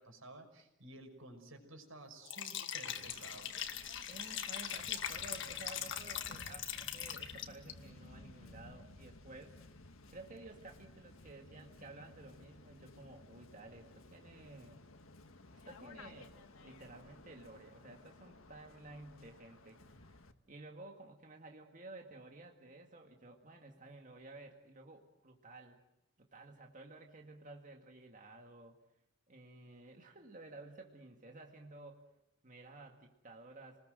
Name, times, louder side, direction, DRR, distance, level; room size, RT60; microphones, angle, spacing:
voice 1, 0.0-3.5, right 2 dB, 75° right, 5 dB, 5.8 m, -53 dB
Liquid, 2.2-7.7, left 9 dB, 60° left, 1.8 m, -41 dB
Waves surf, 2.9-20.3, left 2 dB, 80° left, 1.6 m, -57 dB
voice 2, 4.1-9.8 10.1-14.8 15.5-16.3 16.6-20.2 20.5-25.8 26.2-28.8 29.3-32.1 32.4-33.8, right 2 dB, 40° right, 3 dB, 2.0 m, -53 dB
28.0 x 20.5 x 7.8 m, 0.86 s
head